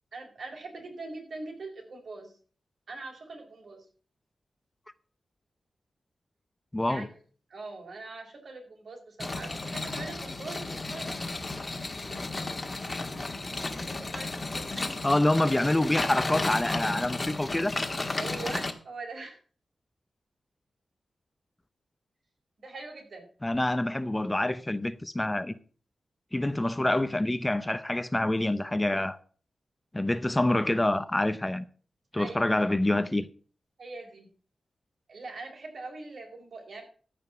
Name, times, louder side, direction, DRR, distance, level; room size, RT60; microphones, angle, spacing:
voice 1, 0.1-2.4 2.9-3.8 6.8-7.1 7.5-11.4 13.7-15.0 18.1-19.4 22.6-23.3 32.1-32.6 33.8-34.3 35.1-36.8, right 3 dB, 65° right, 4.4 m, -42 dB
voice 2, 6.7-7.1 15.0-17.7 23.4-25.6 26.3-29.2 29.9-31.6 32.1-33.3, left 1 dB, 15° left, 0.6 m, -26 dB
sound 1, 9.2-18.7, left 2 dB, 30° left, 1.4 m, -33 dB
14.5 x 5.2 x 7.0 m
wide cardioid pair, 95°, 0 cm